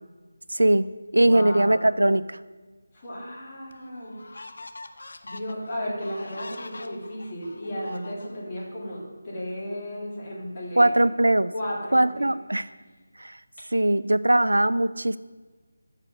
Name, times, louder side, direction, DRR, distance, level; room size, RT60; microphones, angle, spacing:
voice 1, 0.5-2.4 10.8-11.5 11.9-12.7 13.2-13.4 13.7-15.2, right 1 dB, 85° right, 15 dB, 0.3 m, -21 dB
voice 2, 1.1-1.8 2.9-4.2 5.2-11.0 11.5-12.3, equal, 25° left, -6 dB, 2.3 m, -34 dB
sound 1, 3.0-3.1 3.7-8.7, left 2 dB, 65° left, 0.5 m, -44 dB
6.7 x 4.9 x 6.2 m, 1.3 s
figure-of-eight pair, 165°, 0 cm